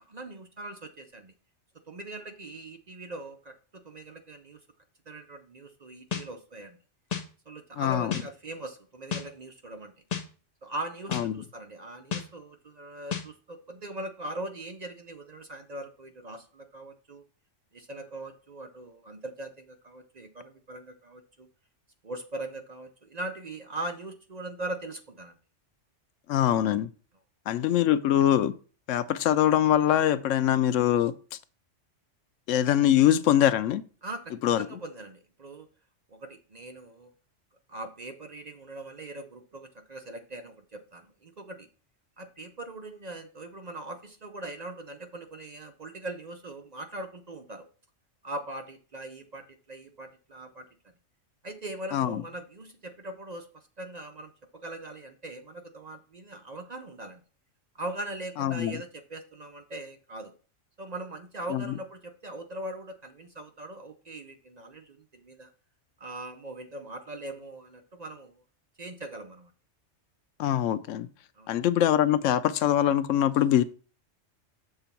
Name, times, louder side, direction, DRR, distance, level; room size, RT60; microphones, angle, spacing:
voice 1, 0.0-1.3 1.9-3.5 3.8-4.6 5.1-6.8 7.5-9.9 10.6-17.2 17.7-21.5 22.0-25.4 34.0-35.7 36.1-37.1 37.7-41.7 42.2-47.7 48.2-50.7 51.4-54.3 54.6-57.2 57.7-60.3 60.8-65.5 66.0-68.4 68.8-69.5 71.4-71.6, right 2 dB, 45° right, 0.6 m, -41 dB
sound 1, 6.1-6.3 7.1-7.3 8.1-8.3 9.1-9.3 10.1-10.3 11.1-11.3 12.1-12.3 13.1-13.3, left 7 dB, 40° left, 0.7 m, -31 dB
voice 2, 7.8-8.1 11.1-11.4 26.3-26.9 27.5-28.5 28.9-31.1 32.5-33.8 34.4-34.7 51.9-52.2 58.4-58.8 61.5-61.6 70.4-71.1 71.5-73.6, left 11 dB, 85° left, 0.9 m, -23 dB
6.8 x 3.9 x 5.7 m
omnidirectional pair, 1.3 m